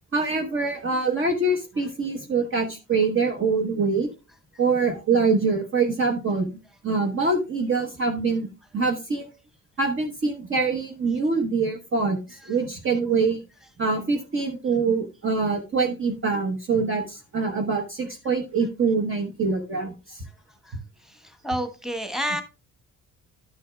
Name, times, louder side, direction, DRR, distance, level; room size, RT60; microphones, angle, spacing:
voice 1, 0.1-4.1 4.6-6.5 6.8-8.5 8.7-9.3 9.8-12.2 12.5-13.4 13.8-20.2, right 4 dB, 40° right, 2 dB, 1.0 m, -24 dB
voice 2, 21.4-22.4, equal, ahead, 7 dB, 1.1 m, -28 dB
12.0 x 6.3 x 2.2 m, 0.30 s
cardioid pair, 125°, 31 cm